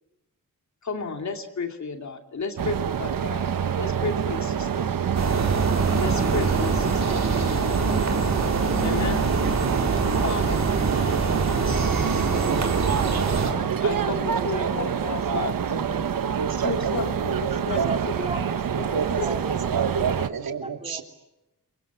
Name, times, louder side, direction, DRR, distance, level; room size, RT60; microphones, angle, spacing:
voice 1, 0.8-4.9 6.0-7.0 8.8-9.2 10.2-10.6 13.8-15.5 16.6-18.3 18.8-18.9 19.1-19.3, left 4 dB, 50° left, 4 dB, 2.7 m, -32 dB
sound 1, 2.6-20.3, right 8 dB, 70° right, 1.1 m, -27 dB
sound 2, 5.1-13.5, right 4 dB, 50° right, 4.1 m, -25 dB
voice 2, 13.9-14.9 15.5-15.7 16.1-16.2 17.6-18.6 18.9-19.7 20.0-20.3 20.6-21.0, right 2 dB, 15° right, 4 dB, 2.3 m, -38 dB
voice 3, 15.7-18.0 18.9-19.4 19.7-21.0, right 6 dB, 85° right, 5 dB, 2.7 m, -29 dB
29.0 x 24.5 x 8.3 m, 0.93 s
wide cardioid pair, 180°, 35 cm